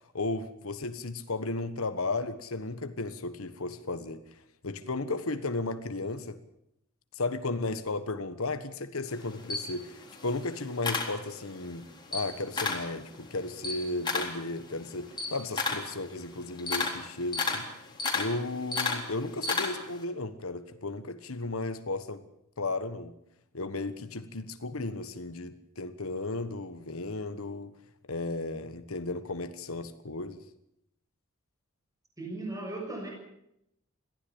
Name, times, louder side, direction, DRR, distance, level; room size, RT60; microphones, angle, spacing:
voice 1, 0.1-6.4 7.1-11.9 12.1-17.7 18.1-22.2 22.6-23.1 23.5-27.7 28.1-30.4, left 2 dB, 75° left, 10 dB, 1.4 m, -34 dB
Camera, 9.1-11.7 12.0-12.9 13.3-20.0, left 4 dB, 20° left, 3.8 m, -32 dB
voice 2, 32.2-33.1, right 2 dB, 15° right, 1 dB, 6.8 m, -37 dB
22.0 x 15.0 x 8.7 m, 0.79 s
head